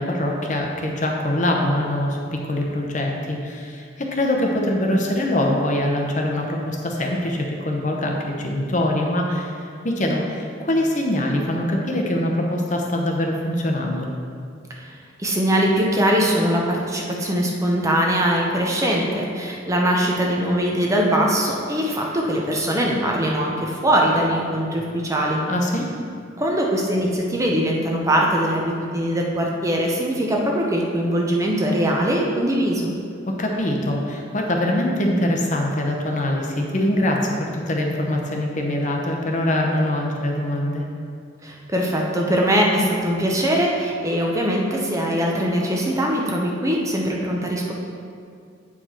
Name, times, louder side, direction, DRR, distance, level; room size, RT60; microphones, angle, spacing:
voice 1, 0.0-9.5 9.8-14.1 25.5-25.9 33.3-40.9, left 1 dB, 40° left, 1 dB, 0.8 m, -23 dB
voice 2, 15.2-25.4 26.4-32.9 41.4-47.7, equal, 15° right, -1 dB, 0.7 m, -21 dB
8.4 x 4.7 x 4.4 m, 2.3 s
head